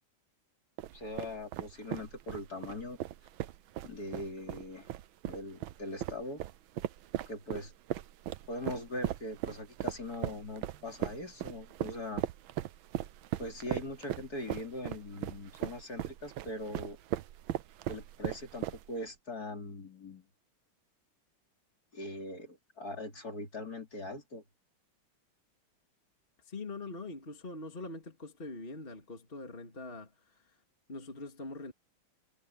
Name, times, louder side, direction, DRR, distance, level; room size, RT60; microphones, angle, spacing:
sound 1, 0.8-19.1, right 13 dB, 75° right, 1.5 m, -38 dB
voice 1, 0.9-3.0 3.8-4.9 5.3-6.4 7.3-7.7 8.5-12.2 13.4-17.0 17.9-20.3 21.9-24.4, left 2 dB, 45° left, 4.0 m, -41 dB
voice 2, 26.4-30.6 30.9-31.7, left 2 dB, 25° left, 2.6 m, -43 dB
omnidirectional pair, 2.3 m